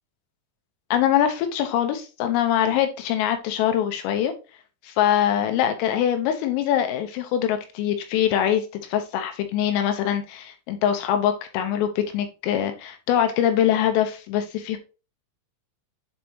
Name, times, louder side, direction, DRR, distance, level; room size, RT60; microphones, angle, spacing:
voice 1, 0.9-4.3 4.8-8.6 8.9-14.8, left 10 dB, 80° left, 7 dB, 3.5 m, -23 dB
9.1 x 4.2 x 2.9 m, 0.31 s
omnidirectional pair, 5.9 m